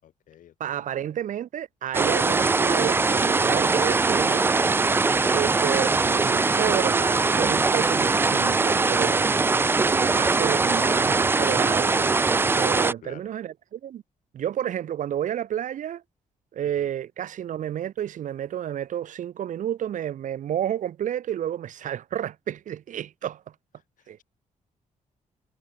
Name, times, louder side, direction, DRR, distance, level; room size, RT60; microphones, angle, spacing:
voice 1, 0.0-0.8 13.0-13.3 16.8-16.9 24.0-24.2, left 11 dB, 75° left, 6.7 m, -51 dB
voice 2, 0.6-4.5 5.3-9.3 9.9-14.0 14.3-16.0 16.5-23.4 24.1-24.2, right 10 dB, 70° right, 2.8 m, -31 dB
sound 1, 1.9-12.9, right 3 dB, 15° right, 0.4 m, -22 dB
cardioid pair, 115°, 14 cm